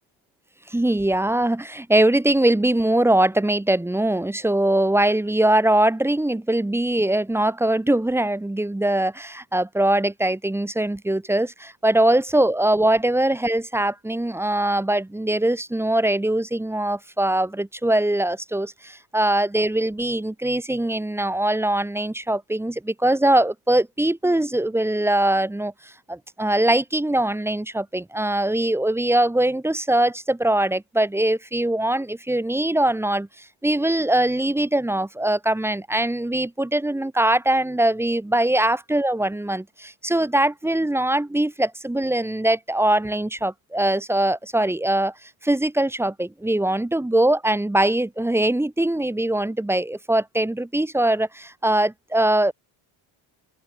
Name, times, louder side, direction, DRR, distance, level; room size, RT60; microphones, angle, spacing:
voice 1, 0.7-45.1 45.4-52.5, right 1 dB, 5° right, 1.0 m, -22 dB
cardioid pair, 160°, 48 cm